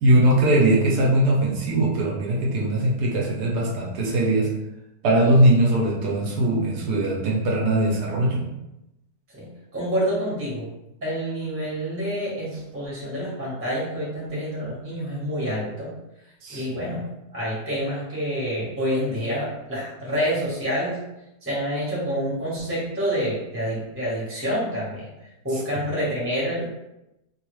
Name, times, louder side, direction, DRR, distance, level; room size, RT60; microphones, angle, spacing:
voice 1, 0.0-4.5 5.0-8.5 16.4-16.9, right 1 dB, 75° right, -3 dB, 1.2 m, -20 dB
voice 2, 9.7-10.7 11.0-15.9 16.5-17.0 17.3-21.0 21.4-25.1 25.4-26.6, equal, 10° right, -6 dB, 0.8 m, -27 dB
3.1 x 2.3 x 3.0 m, 0.91 s
omnidirectional pair, 1.8 m